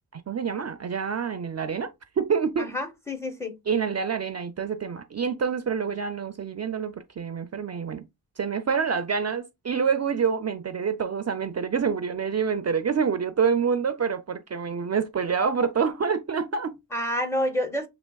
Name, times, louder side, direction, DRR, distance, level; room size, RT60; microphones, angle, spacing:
voice 1, 0.1-1.9 2.2-2.7 3.7-8.0 8.4-16.7, right 6 dB, 45° right, 0.4 m, -27 dB
voice 2, 2.6-3.6 16.9-17.9, equal, 5° left, 0.6 m, -28 dB
6.1 x 2.9 x 2.3 m
wide cardioid pair, 140°, 39 cm